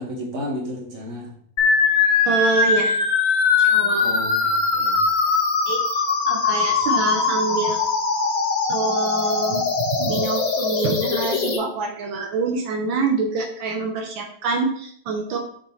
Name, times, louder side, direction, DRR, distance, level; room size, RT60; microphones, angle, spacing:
voice 1, 0.0-1.3 4.0-5.0, left 1 dB, 40° right, -1 dB, 2.1 m, -32 dB
sound 1, 1.6-11.6, left 4 dB, 65° left, 1.8 m, -21 dB
voice 2, 2.3-3.0 3.6-4.1 5.7-7.8 8.7-15.5, right 3 dB, 85° right, 2 dB, 1.7 m, -26 dB
7.2 x 6.3 x 3.2 m, 0.62 s
omnidirectional pair, 2.0 m